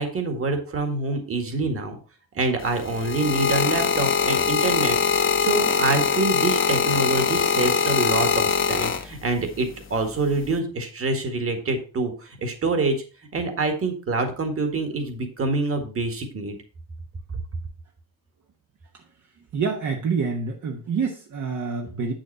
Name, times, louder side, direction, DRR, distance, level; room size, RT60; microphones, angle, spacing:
voice 1, 0.0-1.9 2.4-13.0 13.3-16.6, right 3 dB, 40° right, 6 dB, 1.9 m, -26 dB
sound 1, 2.6-9.4 10.3-10.6, left 6 dB, 35° left, 0.9 m, -22 dB
voice 2, 19.5-22.1, right 5 dB, 55° right, 1 dB, 1.3 m, -27 dB
8.3 x 6.3 x 4.2 m, 0.35 s
cardioid pair, 145°, 34 cm